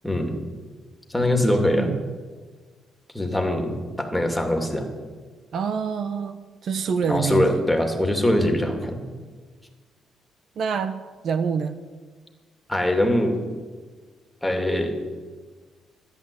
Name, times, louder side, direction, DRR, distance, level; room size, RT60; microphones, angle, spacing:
voice 1, 0.0-0.4 1.1-1.9 3.1-4.9 7.1-9.0 12.7-13.4 14.4-15.0, left 1 dB, 5° left, 4 dB, 2.6 m, -22 dB
voice 2, 1.5-2.1 5.5-7.6 10.6-11.8, right 6 dB, 60° right, 10 dB, 0.9 m, -27 dB
13.5 x 10.5 x 8.5 m, 1.5 s
cardioid pair, 90°, 0 cm